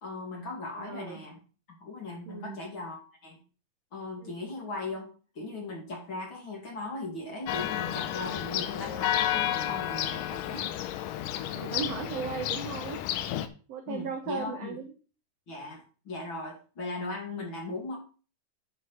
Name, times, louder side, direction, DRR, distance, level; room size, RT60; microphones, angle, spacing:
voice 1, 0.0-1.4 1.8-3.4 3.9-5.1 5.3-10.7 13.9-14.8 15.5-18.0, left 2 dB, 40° left, 0 dB, 2.7 m, -38 dB
voice 2, 0.8-1.2 2.3-2.6 4.2-4.4 8.5-8.6 11.5-13.0 13.7-14.9, right 6 dB, 70° right, 5 dB, 1.5 m, -36 dB
Church bell, 7.5-13.5, left 11 dB, 75° left, 2.2 m, -31 dB
8.4 x 5.4 x 5.8 m, 0.37 s
omnidirectional pair, 4.1 m